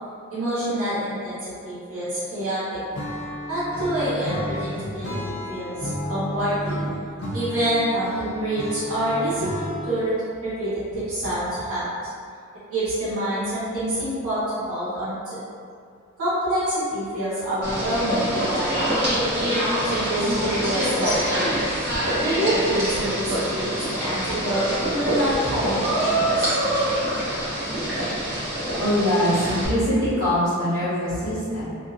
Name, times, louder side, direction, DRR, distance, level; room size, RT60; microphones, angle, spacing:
voice 1, 0.3-1.4 1.6-2.8 3.5-6.9 7.3-10.1 10.4-11.9 12.7-15.4 16.2-19.1 19.8-21.6 22.2-26.5, right 1 dB, 85° right, -13 dB, 1.2 m, -27 dB
Acoustic guitar / Strum, 2.9-10.1, equal, 80° left, 0.5 m, -32 dB
sound 1, 17.6-29.7, right 1 dB, 50° right, 0.9 m, -25 dB
voice 2, 28.8-31.7, equal, 30° right, -20 dB, 1.3 m, -23 dB
2.7 x 2.4 x 2.4 m, 2.3 s
head